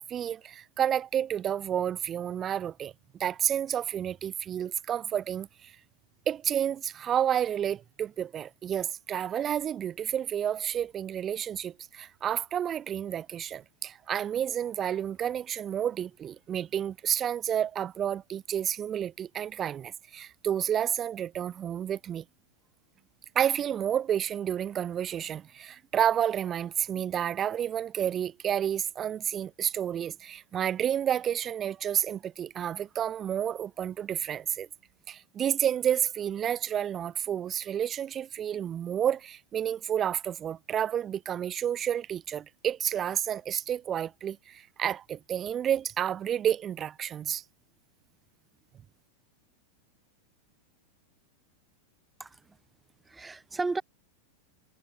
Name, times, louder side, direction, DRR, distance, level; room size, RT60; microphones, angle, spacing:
voice 1, 0.0-2.9 3.2-5.8 6.3-22.2 23.3-34.7 35.1-47.4, right 9 dB, 25° right, 4.9 m, -30 dB
voice 2, 53.1-53.8, right 3 dB, 10° right, 5.3 m, -33 dB
figure-of-eight pair, 90°, 0 cm